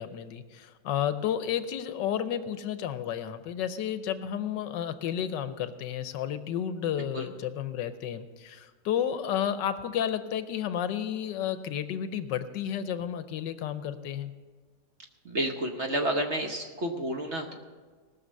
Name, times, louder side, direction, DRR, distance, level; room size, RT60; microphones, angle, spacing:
voice 1, 0.0-14.3, left 9 dB, 80° left, 11 dB, 1.3 m, -32 dB
voice 2, 15.2-17.5, right 1 dB, 45° right, 3 dB, 1.0 m, -30 dB
19.0 x 6.6 x 6.4 m, 1.5 s
omnidirectional pair, 2.0 m